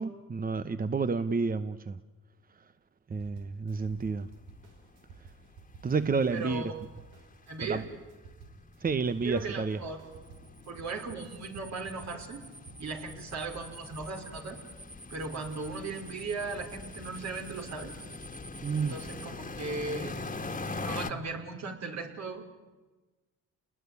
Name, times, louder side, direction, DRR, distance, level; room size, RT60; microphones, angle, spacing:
voice 1, 0.0-2.0 3.1-4.3 5.8-6.6 7.7-7.8 8.8-9.8 18.6-19.0, right 4 dB, 30° right, 12 dB, 1.0 m, -30 dB
sound 1, 3.2-13.0, right 4 dB, 85° right, 5.8 m, -53 dB
sound 2, 4.0-4.1 4.3-4.6 4.9-5.0 5.2-21.1, left 3 dB, 25° left, 1.8 m, -43 dB
voice 2, 6.3-6.7 7.5-7.9 9.2-10.0 10.7-12.5 12.8-14.6 15.1-17.9 18.7-20.2 20.7-22.5, right 3 dB, 60° right, 4 dB, 5.1 m, -37 dB
sound 3, 10.1-19.3, right 1 dB, 15° right, 2.3 m, -50 dB
29.0 x 20.0 x 9.7 m, 1.2 s
cardioid pair, 90°, 30 cm